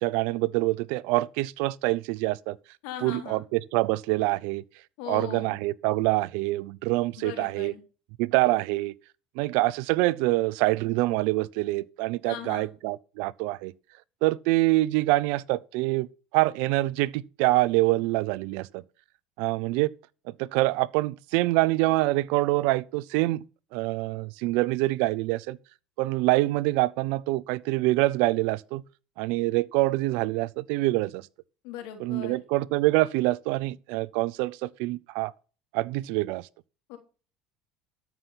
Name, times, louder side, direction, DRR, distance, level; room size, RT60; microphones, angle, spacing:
voice 1, 0.0-2.6 3.0-4.6 5.1-7.7 8.2-8.9 9.4-13.7 14.2-16.1 16.3-18.8 19.4-19.9 20.4-23.4 23.7-25.6 26.0-28.8 29.2-31.3 32.0-35.3 35.7-36.5, right 19 dB, 70° right, 0.6 m, -25 dB
voice 2, 2.8-3.4 5.0-5.6 7.2-7.8 12.2-12.7 31.6-32.4 36.9-37.0, left 10 dB, 75° left, 3.5 m, -39 dB
13.0 x 5.9 x 5.9 m
supercardioid pair, 95°, 3 cm